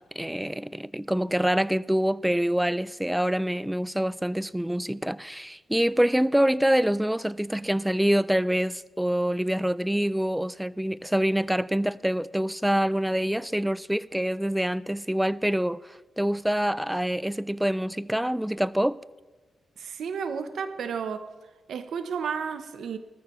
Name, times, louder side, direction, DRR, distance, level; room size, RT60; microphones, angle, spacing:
voice 1, 0.0-19.0, equal, 5° right, 0.4 m, -26 dB
voice 2, 19.8-21.3 21.7-23.0, right 6 dB, 80° right, 0.8 m, -32 dB
19.5 x 14.0 x 3.1 m
wide cardioid pair, 115°, 0 cm